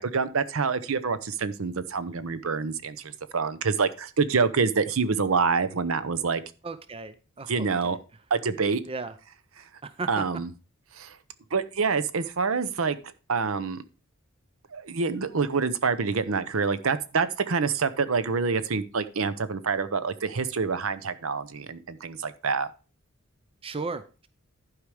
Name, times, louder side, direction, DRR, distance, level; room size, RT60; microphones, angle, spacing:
voice 1, 0.0-6.4 7.5-8.0 8.3-8.8 9.6-9.7 10.1-10.5 11.0-11.2 11.5-13.0 13.3-13.8 14.7-22.7, right 5 dB, 70° right, 13 dB, 0.7 m, -26 dB
voice 2, 6.6-7.5 7.8-8.0 8.9-9.1 9.8-10.2 23.6-24.3, right 3 dB, 25° right, 12 dB, 0.5 m, -35 dB
11.5 x 4.9 x 4.9 m, 0.34 s
head